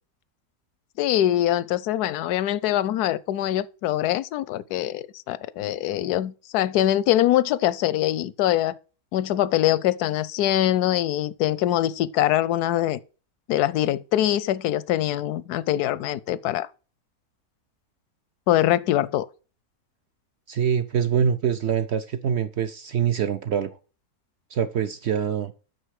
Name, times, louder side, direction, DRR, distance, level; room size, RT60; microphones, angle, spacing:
voice 1, 1.0-8.7 9.1-13.0 13.5-16.7 18.5-19.3, left 13 dB, 85° left, 1.1 m, -23 dB
voice 2, 20.5-23.7 24.5-25.5, right 8 dB, 65° right, 0.7 m, -24 dB
9.1 x 6.4 x 4.8 m
omnidirectional pair, 1.6 m